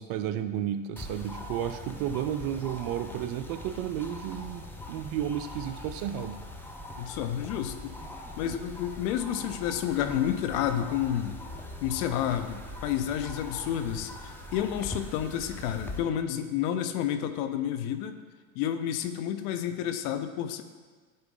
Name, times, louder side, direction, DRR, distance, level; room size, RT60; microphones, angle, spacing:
voice 1, 0.0-6.4, right 10 dB, 45° right, 10 dB, 0.5 m, -32 dB
sound 1, 1.0-16.0, left 1 dB, 5° left, 0.6 m, -42 dB
voice 2, 7.0-8.0 8.4-11.4 11.8-18.2 18.5-20.6, left 10 dB, 60° left, 9 dB, 0.8 m, -30 dB
9.5 x 4.0 x 3.8 m, 1.5 s
hypercardioid pair, 90°, 48 cm